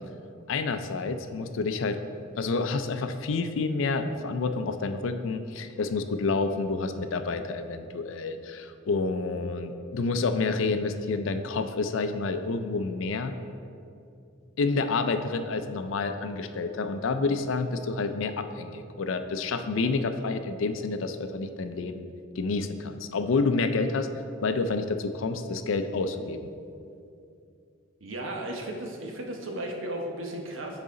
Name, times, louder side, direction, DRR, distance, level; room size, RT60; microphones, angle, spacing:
voice 1, 0.5-2.0 2.4-13.3 14.6-22.1 22.4-24.1 24.4-26.5, left 3 dB, 70° left, 9 dB, 0.4 m, -29 dB
voice 2, 28.0-30.8, right 1 dB, 75° right, 1 dB, 0.9 m, -35 dB
9.6 x 4.0 x 3.7 m, 2.5 s
head